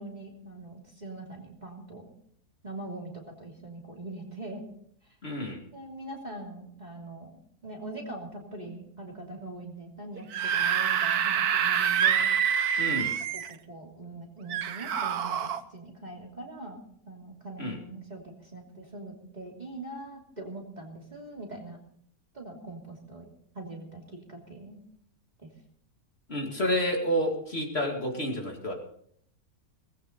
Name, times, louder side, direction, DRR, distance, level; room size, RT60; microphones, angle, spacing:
voice 1, 0.0-2.1 2.6-3.1 3.4-4.6 5.7-7.3 7.6-12.3 13.3-21.8 22.3-23.3 23.5-24.8 25.4-25.5, right 2 dB, 30° right, 0 dB, 3.1 m, -42 dB
voice 2, 5.2-5.6 12.8-13.2 17.6-17.8 26.3-28.7, equal, 45° left, 0 dB, 2.7 m, -29 dB
Screaming / Screech, 10.2-13.5 14.5-15.6, right 8 dB, 85° right, 1.4 m, -26 dB
19.0 x 16.0 x 4.1 m, 0.66 s
omnidirectional pair, 1.6 m